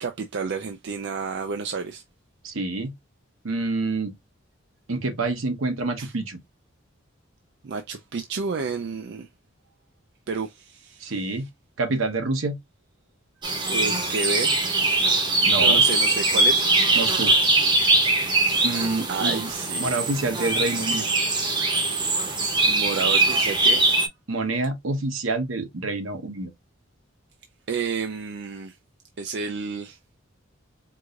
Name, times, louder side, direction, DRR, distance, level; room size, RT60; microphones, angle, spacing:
voice 1, 0.0-2.0 6.0-6.1 7.6-9.3 10.3-11.4 13.7-14.7 15.6-16.7 19.1-19.9 22.7-23.9 27.7-28.8 29.2-30.0, right 4 dB, 60° right, 0.4 m, -31 dB
voice 2, 2.4-2.9 3.4-4.1 4.9-6.4 11.0-11.5 11.8-12.6 15.4-15.8 16.9-17.3 18.6-19.5 19.8-21.1 24.3-26.5, right 3 dB, 80° right, 0.9 m, -27 dB
sound 1, 13.4-24.1, right 2 dB, 20° right, 0.8 m, -21 dB
4.7 x 2.5 x 2.3 m
head